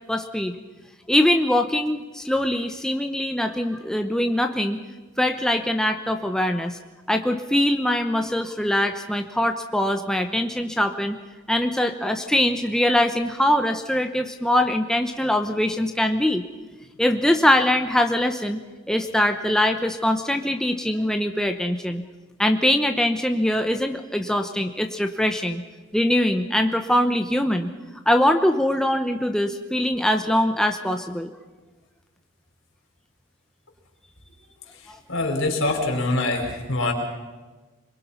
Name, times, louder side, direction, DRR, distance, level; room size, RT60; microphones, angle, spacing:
voice 1, 0.1-0.5 1.1-4.8 5.2-6.8 7.1-11.2 11.5-16.4 17.0-22.0 22.4-25.6 25.9-27.7 28.1-31.3 34.9-35.0, left 1 dB, 5° left, 5 dB, 0.9 m, -22 dB
voice 2, 35.1-36.9, left 2 dB, 75° left, 1 dB, 5.0 m, -24 dB
25.5 x 22.5 x 5.7 m, 1.2 s
head